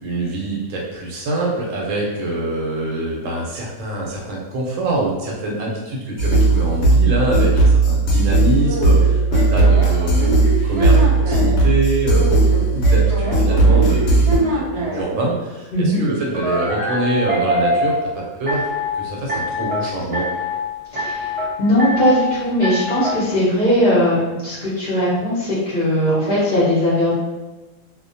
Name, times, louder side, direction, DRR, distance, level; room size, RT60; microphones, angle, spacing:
voice 1, 0.0-18.6 18.9-20.3, right 2 dB, 75° right, -3 dB, 0.9 m, -24 dB
sound 1, 6.2-14.4, right 3 dB, 85° left, 1.1 m, -16 dB
sound 2, 8.6-11.6 12.1-15.1 16.3-18.0 18.5-18.9 19.3-19.8 20.1-20.6 21.0-21.5 21.8-22.3 22.6-23.2, equal, 50° right, 0.4 m, -24 dB
voice 2, 15.7-16.0 20.9-27.1, equal, 40° left, -9 dB, 0.7 m, -19 dB
2.3 x 2.1 x 2.6 m, 1.1 s
omnidirectional pair, 1.4 m